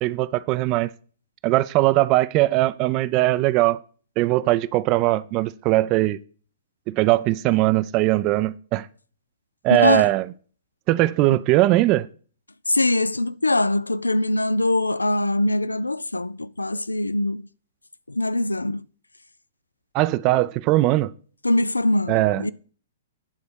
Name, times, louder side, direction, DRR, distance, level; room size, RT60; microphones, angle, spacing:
voice 1, 0.0-0.9 1.4-3.8 4.2-6.2 6.9-8.9 9.6-10.3 10.9-12.1 19.9-21.1 22.1-22.5, right 17 dB, 30° right, 0.4 m, -20 dB
voice 2, 9.7-10.1 11.3-11.4 12.7-17.5 18.1-18.8 21.4-22.5, left 2 dB, 80° left, 0.3 m, -22 dB
9.8 x 4.1 x 7.0 m
figure-of-eight pair, 110°, 0 cm